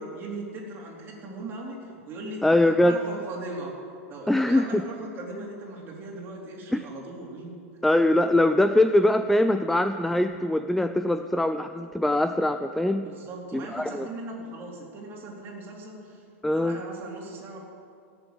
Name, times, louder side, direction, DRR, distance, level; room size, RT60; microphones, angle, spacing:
voice 1, 0.0-3.7 4.1-7.5 13.0-16.2 16.5-17.6, right 2 dB, 30° right, -2 dB, 3.7 m, -39 dB
voice 2, 2.4-3.0 4.3-4.8 6.7-6.8 7.8-13.1 13.5-14.1 16.4-16.8, left 1 dB, ahead, 8 dB, 0.4 m, -22 dB
16.5 x 7.3 x 8.4 m, 2.4 s
hypercardioid pair, 130°, 8 cm